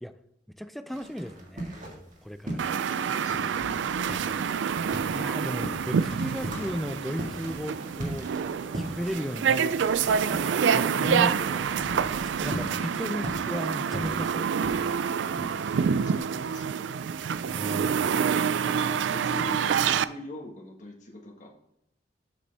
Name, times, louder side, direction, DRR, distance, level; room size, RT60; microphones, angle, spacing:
voice 1, 0.6-2.7 5.1-8.3 8.7-9.8 10.7-14.7 17.5-18.2, equal, ahead, 11 dB, 0.4 m, -35 dB
sound 1, 0.9-2.2 2.4-11.5 11.7-16.2, right 1 dB, 45° right, 1.8 m, -38 dB
sound 2, 2.6-20.0, right 7 dB, 85° right, 0.4 m, -27 dB
voice 2, 2.9-3.6 15.8-17.3 18.6-21.5, left 1 dB, 45° left, 1 dB, 1.6 m, -42 dB
sound 3, 3.6-14.4, right 1 dB, 65° right, 1.7 m, -48 dB
7.3 x 6.7 x 3.4 m, 0.80 s
head